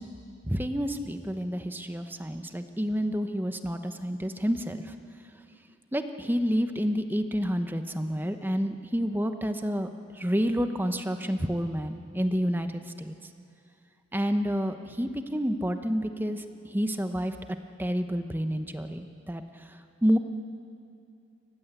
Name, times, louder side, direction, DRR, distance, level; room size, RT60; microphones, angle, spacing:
voice 1, 0.5-4.8 5.9-9.9 10.2-13.1 14.1-16.4 16.7-17.3 17.8-19.4 20.0-20.2, equal, 10° right, 7 dB, 1.0 m, -29 dB
30.0 x 15.0 x 8.2 m, 2.5 s
head